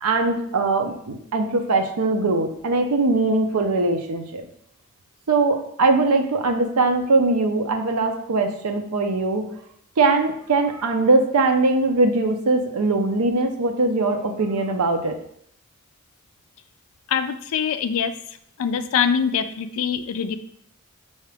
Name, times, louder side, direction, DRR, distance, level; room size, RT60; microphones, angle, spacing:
voice 1, 0.0-4.5 5.3-9.4 10.0-15.1, right 3 dB, 85° right, 5 dB, 0.6 m, -21 dB
voice 2, 17.1-18.1 18.6-20.4, left 7 dB, 65° left, 10 dB, 0.3 m, -23 dB
4.7 x 2.8 x 3.4 m, 0.69 s
head